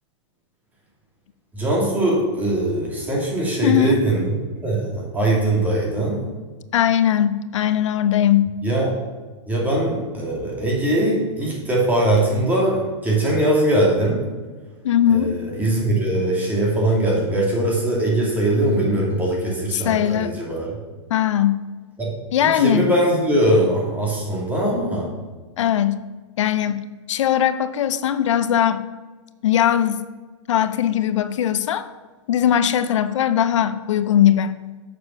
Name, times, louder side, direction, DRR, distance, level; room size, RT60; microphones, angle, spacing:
voice 1, 1.5-4.4 4.6-6.2 8.6-8.9 9.5-14.2 15.1-20.7 22.0-22.1 22.4-25.1, right 1 dB, 10° right, -4 dB, 2.8 m, -21 dB
voice 2, 3.6-4.0 6.7-8.5 14.8-15.4 19.7-20.3 21.1-21.6 22.3-22.9 25.6-26.0 26.4-28.8 29.4-30.0 30.5-31.9 32.3-34.6, left 10 dB, 80° left, 13 dB, 0.6 m, -19 dB
7.6 x 6.9 x 6.0 m, 1.3 s
supercardioid pair, 150°, 16 cm